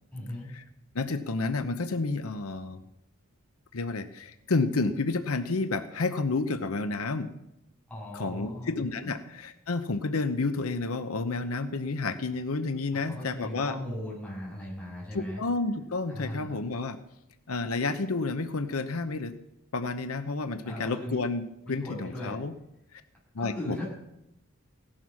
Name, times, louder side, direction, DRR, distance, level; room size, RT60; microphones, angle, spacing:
voice 1, 0.1-0.5 7.9-8.7 13.1-15.4 16.1-16.6 20.6-21.2 21.7-22.4 23.4-23.9, left 1 dB, 5° left, -6 dB, 8.0 m, -38 dB
voice 2, 0.9-2.8 3.7-7.3 8.1-13.8 15.1-17.0 17.5-19.4 19.7-22.5 22.9-23.0 23.3-23.8, left 3 dB, 80° left, 9 dB, 0.9 m, -30 dB
17.0 x 11.5 x 6.3 m, 0.85 s
head